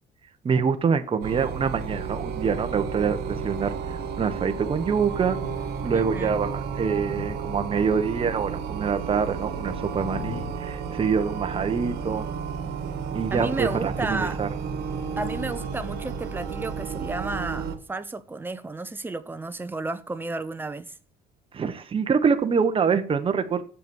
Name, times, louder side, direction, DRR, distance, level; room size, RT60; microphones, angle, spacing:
voice 1, 0.4-3.7 4.2-5.4 5.8-12.3 13.1-14.5 21.5-23.6, right 6 dB, 30° right, 1.2 m, -25 dB
sound 1, 1.2-17.8, right 6 dB, 75° right, 1.8 m, -32 dB
Thunder, 5.1-8.0 8.6-10.5, left 8 dB, 70° left, 1.0 m, -41 dB
voice 2, 5.9-6.4 13.3-14.4 15.2-20.9, right 2 dB, 10° right, 0.9 m, -32 dB
8.4 x 7.0 x 7.9 m
cardioid pair, 110°, 17 cm